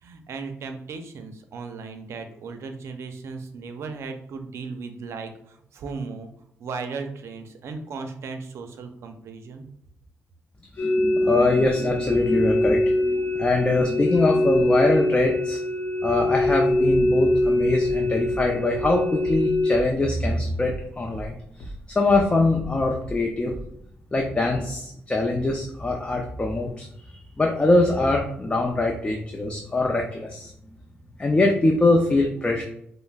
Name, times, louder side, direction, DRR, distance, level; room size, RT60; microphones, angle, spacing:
voice 1, 0.0-6.3 6.6-9.6, right 4 dB, 70° right, 6 dB, 0.5 m, -36 dB
voice 2, 10.7-15.6 16.0-21.4 22.0-23.5 24.1-26.9 27.4-30.5 31.2-32.6, left 2 dB, 20° left, 1 dB, 0.5 m, -23 dB
sound 1, 10.8-19.8, left 1 dB, 45° left, 0.9 m, -23 dB
sound 2, 16.4-21.3 21.6-23.8, equal, 80° left, 0.8 m, -38 dB
5.2 x 2.0 x 2.4 m, 0.74 s
cardioid pair, 70°, 5 cm